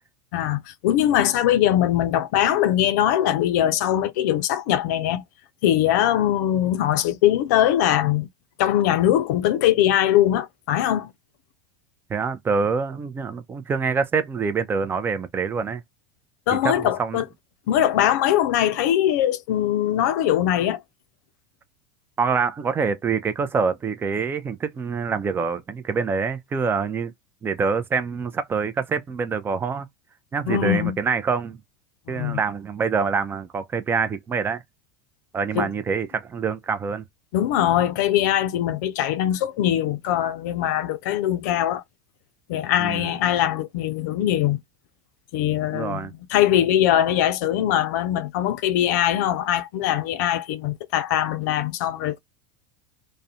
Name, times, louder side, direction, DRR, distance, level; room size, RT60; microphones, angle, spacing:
voice 1, 0.3-5.2 5.6-8.3 8.6-11.1 16.5-17.2 17.7-20.8 30.5-31.0 32.1-32.4 35.5-35.7 37.3-41.8 42.5-44.6 45.3-52.2, left 11 dB, 75° left, 0.4 m, -21 dB
voice 2, 12.1-15.8 16.6-17.2 22.2-27.1 27.4-29.9 30.3-31.6 32.1-34.6 35.3-37.0 42.8-43.2 45.7-46.1, right 5 dB, 20° right, 0.4 m, -25 dB
2.4 x 2.1 x 2.7 m
supercardioid pair, 110°, 10 cm